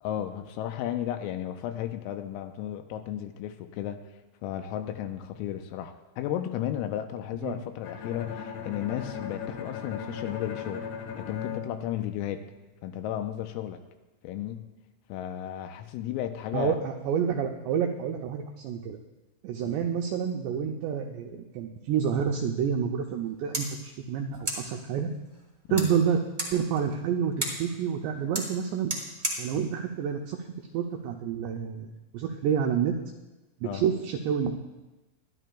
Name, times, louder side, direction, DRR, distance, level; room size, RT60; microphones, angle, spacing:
voice 1, 0.0-4.0 4.4-10.9 11.2-12.5 12.8-13.8 14.2-14.7 15.1-16.8 25.7-25.9 33.6-33.8, left 11 dB, 90° left, 7 dB, 3.4 m, -34 dB
Bowed string instrument, 7.8-12.8, left 6 dB, 70° left, 2.8 m, -38 dB
voice 2, 16.5-19.0 19.4-25.1 25.7-26.2 26.5-28.9 29.4-30.4 30.7-31.9 32.1-32.9 33.6-34.5, right 7 dB, 90° right, 3 dB, 2.4 m, -28 dB
sound 1, 23.1-31.1, right 1 dB, 15° right, 1.3 m, -38 dB
23.0 x 12.0 x 2.3 m, 1.1 s
omnidirectional pair, 5.9 m